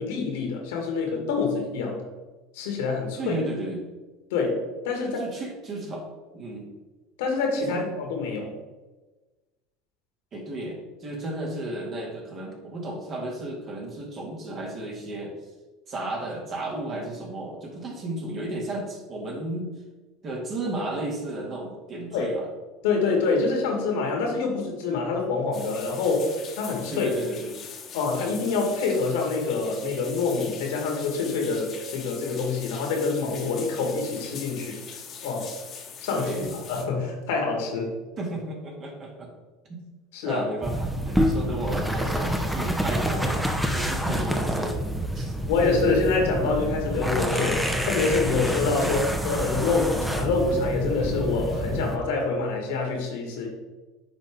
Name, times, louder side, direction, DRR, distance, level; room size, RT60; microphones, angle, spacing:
voice 1, 0.0-2.0 2.5-3.4 4.3-5.2 7.2-8.5 22.1-22.4 22.8-27.1 27.9-34.8 35.2-35.5 36.0-37.9 40.1-40.4 45.5-53.5, left 4 dB, 75° left, 2 dB, 1.7 m, -26 dB
voice 2, 3.2-3.9 4.9-6.1 6.3-6.7 7.7-7.8 10.3-15.3 15.9-19.7 20.2-22.5 26.9-27.6 36.1-36.6 38.2-39.3 39.7-39.8 40.3-43.5 43.7-44.8 45.1-45.3 48.8-49.0, right 1 dB, 40° right, 0 dB, 2.1 m, -33 dB
sound 1, 25.5-36.8, left 6 dB, 45° left, 1.3 m, -42 dB
sound 2, 40.6-52.0, equal, 5° right, 0.9 m, -27 dB
9.5 x 3.8 x 3.6 m, 1.2 s
hypercardioid pair, 75°, 0 cm